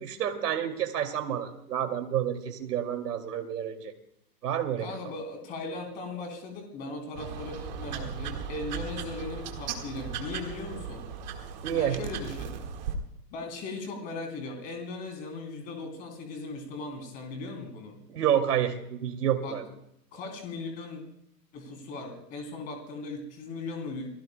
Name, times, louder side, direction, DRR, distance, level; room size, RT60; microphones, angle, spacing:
voice 1, 0.0-3.9 4.4-4.9 11.6-12.0 18.1-19.7, right 9 dB, 65° right, 5 dB, 2.6 m, -29 dB
voice 2, 4.8-11.0 11.7-12.5 13.3-18.0 19.4-19.6 20.1-21.0 21.5-24.1, left 3 dB, 15° left, 3 dB, 3.2 m, -38 dB
sound 1, 7.2-13.0, right 6 dB, 25° right, 1.7 m, -37 dB
29.5 x 19.5 x 2.2 m, 0.77 s
hypercardioid pair, 180°, 50 cm